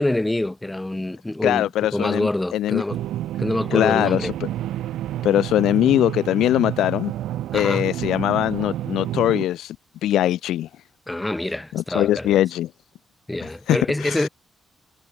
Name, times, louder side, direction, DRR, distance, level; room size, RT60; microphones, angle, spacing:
voice 1, 0.0-3.0 3.4-4.3 7.5-7.9 11.1-12.4 13.3-14.3, left 1 dB, 15° left, 2.3 m, -26 dB
voice 2, 1.4-2.8 3.7-4.5 5.2-7.1 7.5-9.8 10.0-10.7 11.7-12.7 13.7-14.3, left 13 dB, 80° left, 0.6 m, -21 dB
sound 1, 2.9-9.5, right 13 dB, 80° right, 1.9 m, -29 dB
hypercardioid pair, 45°, 0 cm